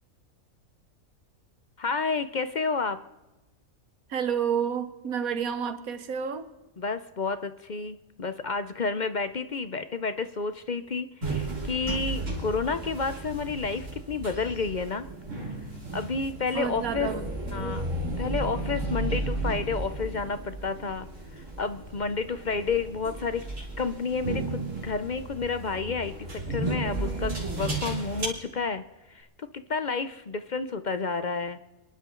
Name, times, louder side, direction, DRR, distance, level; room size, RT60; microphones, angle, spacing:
voice 1, 1.8-3.0 6.8-15.1 15.9-17.1 17.5-17.9 18.2-23.4 23.8-31.6, left 4 dB, 45° left, 11 dB, 0.6 m, -30 dB
voice 2, 4.1-6.5 16.5-17.2 17.5-17.7, right 7 dB, 90° right, 10 dB, 1.6 m, -30 dB
sound 1, 11.2-28.3, right 2 dB, 65° right, 3.5 m, -34 dB
30.0 x 11.5 x 3.8 m, 1.1 s
omnidirectional pair, 1.4 m